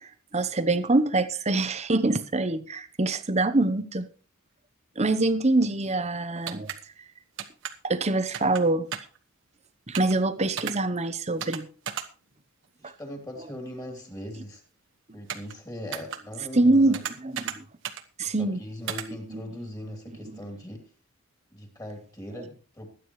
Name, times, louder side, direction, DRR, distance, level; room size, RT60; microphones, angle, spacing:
voice 1, 0.3-4.1 5.0-6.7 7.8-8.9 9.9-11.7 12.8-12.9 16.5-17.6 18.2-18.6 19.1-19.4 20.2-20.4, right 2 dB, 30° right, 0.9 m, -25 dB
sound 1, 6.5-6.8 7.4-7.7 8.3-8.6 8.9-9.2 9.9-10.1 10.6-10.7 11.4-11.6 11.9-12.1 15.3-15.5 15.9-16.2 16.9-17.6 17.8-18.0 18.9-19.1, right 9 dB, 55° right, 1.2 m, -33 dB
voice 2, 12.8-14.6 15.1-17.0 18.2-20.9 21.5-22.9, left 1 dB, 15° left, 3.2 m, -40 dB
22.0 x 9.4 x 3.2 m
head